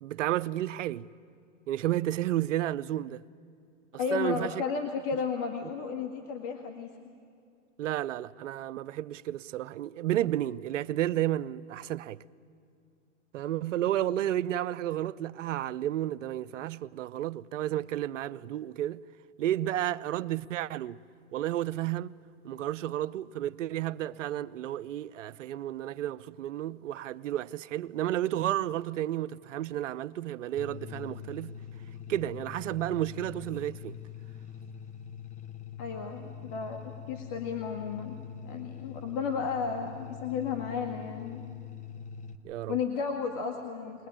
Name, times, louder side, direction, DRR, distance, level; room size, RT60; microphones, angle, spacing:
voice 1, 0.0-1.0 1.7-3.2 4.1-4.6 7.8-12.2 13.3-19.0 19.4-21.0 21.3-22.1 22.4-31.6 32.1-34.0 42.4-42.8, right 13 dB, 80° right, 0.7 m, -32 dB
voice 2, 4.0-6.9 35.8-38.2 38.4-41.4 42.7-44.1, left 5 dB, 45° left, 1.9 m, -33 dB
sound 1, 30.6-42.4, left 8 dB, 20° left, 0.9 m, -44 dB
22.0 x 19.5 x 8.8 m
hypercardioid pair, 130°, 37 cm